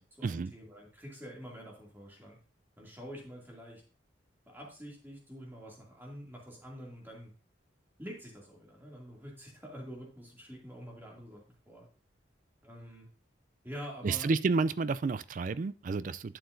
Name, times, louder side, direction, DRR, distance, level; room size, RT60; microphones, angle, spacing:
voice 1, 0.0-2.4 2.8-3.8 4.5-7.3 8.0-11.9 12.6-13.1 13.6-14.3, equal, 10° right, -2 dB, 2.5 m, -47 dB
voice 2, 14.0-16.4, right 4 dB, 40° right, 16 dB, 0.3 m, -30 dB
11.5 x 6.8 x 2.6 m, 0.36 s
head